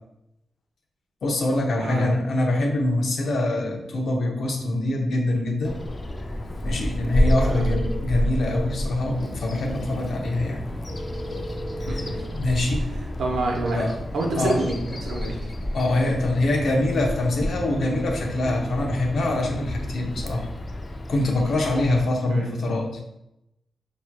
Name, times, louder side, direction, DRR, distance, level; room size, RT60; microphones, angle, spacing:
voice 1, 1.2-5.7 6.6-10.6 11.9-12.0 12.3-12.9 13.7-13.9 14.4-14.6 15.7-20.5 21.1-23.0, left 1 dB, 60° left, 1 dB, 0.7 m, -24 dB
voice 2, 1.8-2.1 7.4-7.7 11.9-12.2 13.2-13.9 14.1-15.5 22.3-22.6, right 2 dB, 70° right, 0 dB, 0.9 m, -27 dB
Bird vocalization bird call bird song, 5.6-22.1, left 1 dB, 25° left, 0.3 m, -30 dB
sound 1, 7.1-8.0 10.9-12.3, right 1 dB, 80° left, 1.3 m, -36 dB
5.7 x 3.0 x 2.2 m, 0.84 s
wide cardioid pair, 140°, 0 cm